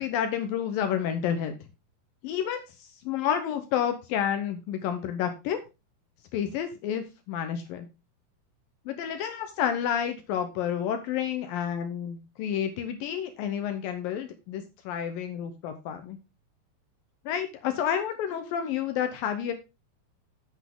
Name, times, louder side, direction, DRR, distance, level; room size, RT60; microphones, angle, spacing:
voice 1, 0.0-1.6 2.2-5.6 6.3-7.9 8.9-16.2 17.3-19.5, left 9 dB, 80° left, 8 dB, 2.0 m, -30 dB
8.2 x 8.1 x 3.6 m, 0.26 s
omnidirectional pair, 5.1 m